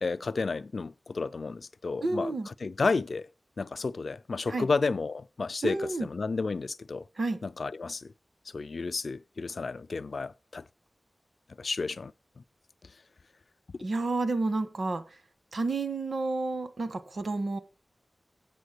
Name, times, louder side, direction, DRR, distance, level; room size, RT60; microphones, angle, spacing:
voice 1, 0.0-3.3 3.6-7.0 7.4-8.1 8.5-10.6 11.6-12.1, left 4 dB, 70° left, 0.4 m, -32 dB
voice 2, 2.0-2.5 4.5-4.7 5.6-6.1 7.2-7.4 13.8-15.0 15.5-17.6, right 3 dB, 70° right, 1.3 m, -30 dB
8.4 x 6.5 x 6.5 m
wide cardioid pair, 80°, 0 cm